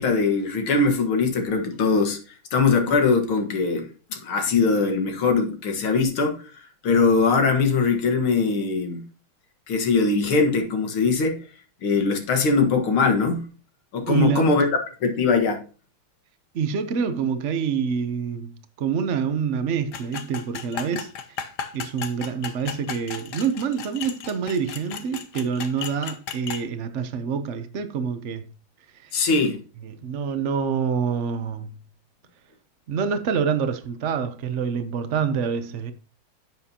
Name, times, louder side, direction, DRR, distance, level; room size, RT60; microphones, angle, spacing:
voice 1, 0.0-2.2 2.5-6.4 6.8-9.1 9.7-11.4 11.8-13.5 13.9-14.7 15.0-15.6 29.1-29.6, left 4 dB, 80° left, 2.4 m, -21 dB
voice 2, 14.1-14.5 16.5-21.1 21.7-28.5 29.0-29.1 29.8-31.7 32.9-35.9, right 6 dB, 75° right, 0.6 m, -26 dB
sound 1, 19.9-26.6, left 7 dB, 60° left, 1.3 m, -35 dB
10.5 x 7.5 x 2.8 m
omnidirectional pair, 2.3 m